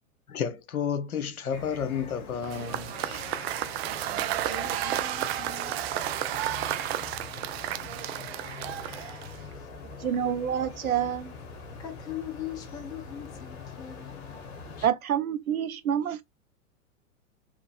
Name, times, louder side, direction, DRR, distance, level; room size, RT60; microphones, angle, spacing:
voice 1, 0.3-3.3, left 7 dB, 80° left, 0.8 m, -32 dB
sound 1, 1.5-14.9, left 4 dB, 50° left, 1.3 m, -44 dB
Cheering / Applause / Crowd, 2.4-9.5, right 13 dB, 50° right, 0.5 m, -32 dB
voice 2, 4.2-5.8 9.5-9.7 11.8-14.2, left 10 dB, 10° left, 0.3 m, -41 dB
voice 3, 10.0-11.3 14.8-16.2, right 9 dB, 80° right, 0.8 m, -27 dB
3.8 x 3.0 x 2.5 m
figure-of-eight pair, 100°, 42 cm